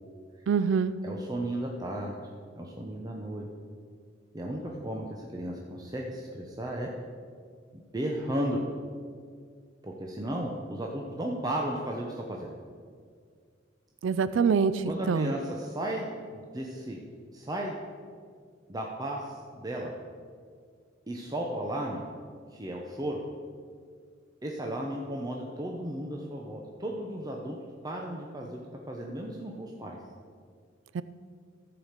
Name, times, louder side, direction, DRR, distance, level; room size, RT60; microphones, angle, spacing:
voice 1, 0.5-1.0 14.0-15.3 30.9-31.0, right 6 dB, 80° right, 14 dB, 0.4 m, -25 dB
voice 2, 1.0-2.2 2.5-3.5 4.3-6.9 7.7-8.6 9.8-12.5 14.8-17.0 17.3-17.8 18.7-19.9 21.1-22.1 22.5-23.2 24.4-27.6 27.8-30.0, right 1 dB, 20° right, -1 dB, 0.8 m, -34 dB
14.0 x 4.9 x 6.5 m, 2.1 s
head